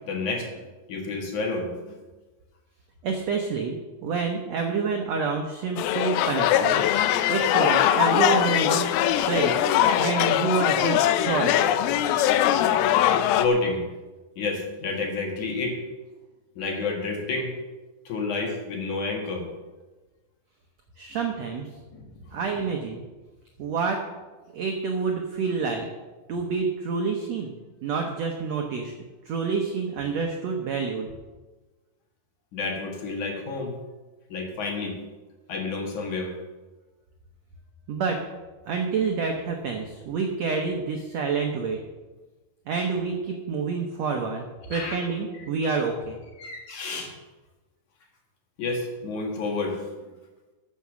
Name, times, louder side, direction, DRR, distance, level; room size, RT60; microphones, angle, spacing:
voice 1, 0.1-0.5 0.9-2.0 13.4-13.8 14.4-15.8 16.6-17.5 18.1-19.5 21.9-22.0 22.3-22.4 32.5-33.8 34.3-35.0 35.5-36.3 44.7-45.0 46.4-47.1 48.6-49.8, left 3 dB, 55° left, 1 dB, 2.9 m, -29 dB
voice 2, 3.0-3.8 4.0-6.8 7.3-8.9 9.3-9.7 10.0-12.3 21.0-21.7 22.3-23.0 23.6-24.0 24.5-25.9 26.3-27.6 27.8-28.9 29.2-31.1 37.9-38.2 38.7-41.8 42.7-46.2, right 5 dB, 80° right, 2 dB, 1.5 m, -28 dB
sound 1, 5.8-13.5, left 11 dB, 85° left, 2.5 m, -21 dB
14.0 x 7.0 x 6.3 m, 1.2 s
omnidirectional pair, 4.5 m